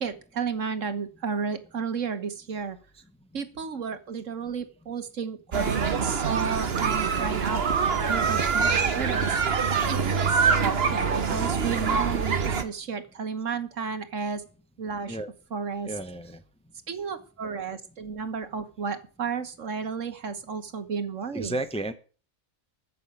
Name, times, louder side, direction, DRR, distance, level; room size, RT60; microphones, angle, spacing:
voice 1, 0.0-2.8 3.3-7.6 7.9-9.4 9.9-14.4 14.8-15.2 15.5-15.9 16.9-21.6, right 5 dB, 65° right, 11 dB, 1.6 m, -32 dB
sound 1, 5.5-12.6, right 5 dB, 50° right, 1.3 m, -25 dB
voice 2, 15.8-16.4 21.3-21.9, right 1 dB, 5° left, 9 dB, 0.8 m, -32 dB
14.5 x 6.0 x 9.0 m, 0.38 s
omnidirectional pair, 1.4 m